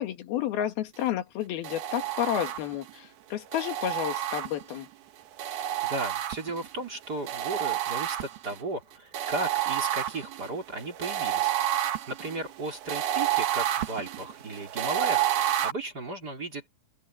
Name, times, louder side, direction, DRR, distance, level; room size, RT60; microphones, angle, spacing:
voice 1, 0.0-4.9, left 11 dB, 90° left, 3.6 m, -31 dB
sound 1, 1.6-2.9 3.5-4.8 5.4-6.7 7.3-8.6 9.1-15.7, right 12 dB, 80° right, 3.4 m, -30 dB
voice 2, 5.8-11.5 12.1-16.7, right 2 dB, 25° right, 3.8 m, -35 dB
open air
omnidirectional pair, 4.2 m